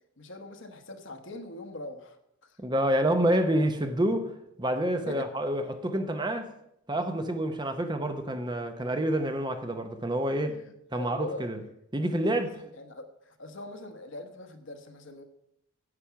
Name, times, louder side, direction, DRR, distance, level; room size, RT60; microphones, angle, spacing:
voice 1, 0.2-2.6 5.1-5.3 10.5-10.6 10.9-11.5 12.2-15.2, left 2 dB, 60° left, 7 dB, 1.2 m, -42 dB
voice 2, 2.6-4.3 4.6-6.5 6.9-10.5 10.9-11.6 11.9-12.6, right 1 dB, 20° right, 8 dB, 0.8 m, -28 dB
9.8 x 8.7 x 5.8 m, 0.78 s
head